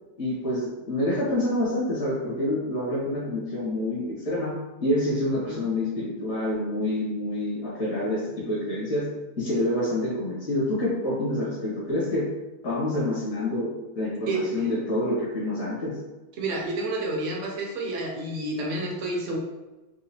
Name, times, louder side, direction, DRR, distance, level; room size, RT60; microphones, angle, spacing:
voice 1, 0.2-4.5 4.8-9.1 9.4-12.3 12.6-13.7 14.0-15.9, left 1 dB, 75° left, -6 dB, 2.0 m, -27 dB
voice 2, 14.3-14.7 16.4-19.4, right 2 dB, 55° right, -1 dB, 1.0 m, -29 dB
4.8 x 2.3 x 2.7 m, 1.1 s
omnidirectional pair, 1.8 m